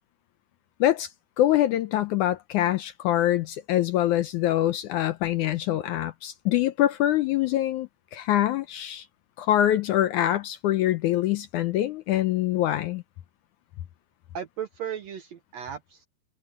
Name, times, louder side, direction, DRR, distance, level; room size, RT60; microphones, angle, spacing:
voice 1, 1.4-9.1 9.4-13.0, left 13 dB, 75° left, 1.9 m, -24 dB
voice 2, 14.3-16.1, right 8 dB, 70° right, 1.7 m, -36 dB
omnidirectional pair, 4.1 m